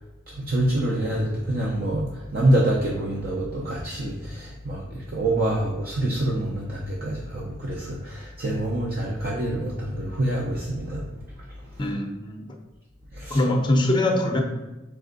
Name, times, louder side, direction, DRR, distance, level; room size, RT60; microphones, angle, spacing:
voice 1, 0.4-2.1 2.3-11.0 13.2-13.4, right 1 dB, 50° right, -3 dB, 0.6 m, -26 dB
voice 2, 11.8-12.4 13.3-14.4, left 1 dB, 25° left, 3 dB, 0.6 m, -22 dB
3.5 x 3.3 x 3.9 m, 1.1 s
head